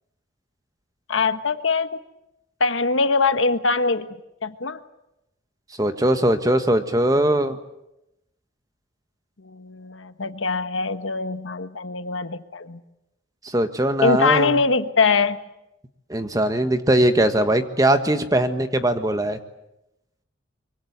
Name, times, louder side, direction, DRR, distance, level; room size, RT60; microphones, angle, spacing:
voice 1, 1.1-2.0 2.6-4.8 9.4-12.8 14.0-15.4, left 4 dB, 85° left, 10 dB, 1.4 m, -22 dB
voice 2, 5.8-7.6 13.4-14.5 16.1-19.4, right 1 dB, 20° right, 8 dB, 1.5 m, -20 dB
24.5 x 24.0 x 8.1 m, 0.88 s
head